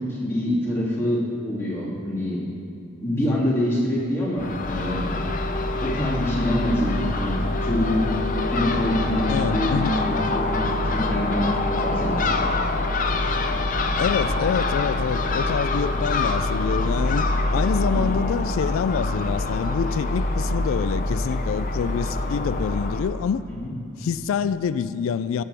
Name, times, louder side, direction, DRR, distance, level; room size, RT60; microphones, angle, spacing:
voice 1, 0.1-2.4 3.0-5.1 5.8-8.2 8.5-10.6 10.8-11.5 11.8-12.4 23.5-23.7, left 1 dB, 10° left, -8 dB, 2.6 m, -25 dB
Crow / Gull seagull, 4.4-23.0, left 2 dB, 40° left, 0.6 m, -25 dB
voice 2, 9.3-10.0 14.0-23.5 24.0-25.4, left 7 dB, 80° left, 15 dB, 0.3 m, -26 dB
17.0 x 7.5 x 3.4 m, 2.8 s
head